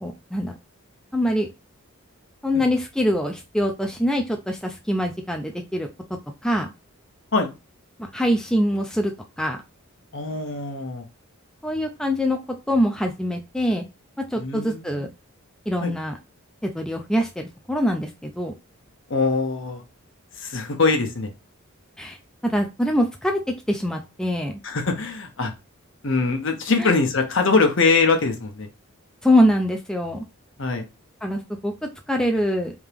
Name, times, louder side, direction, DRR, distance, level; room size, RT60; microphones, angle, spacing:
voice 1, 0.0-0.5 1.1-1.5 2.4-5.9 6.4-6.7 8.0-9.1 9.4-9.6 11.6-12.4 12.7-13.8 14.2-15.1 15.7-16.2 16.6-18.5 22.0-22.2 22.4-24.6 26.8-26.9 29.2-30.2 31.2-32.7, equal, 5° left, 3 dB, 0.3 m, -24 dB
voice 2, 10.1-11.1 14.4-15.1 15.8-15.9 19.1-19.8 20.3-21.3 24.6-25.5 26.0-28.7 30.6-30.8, left 4 dB, 60° left, 5 dB, 0.9 m, -22 dB
3.5 x 2.8 x 3.3 m, 0.26 s
head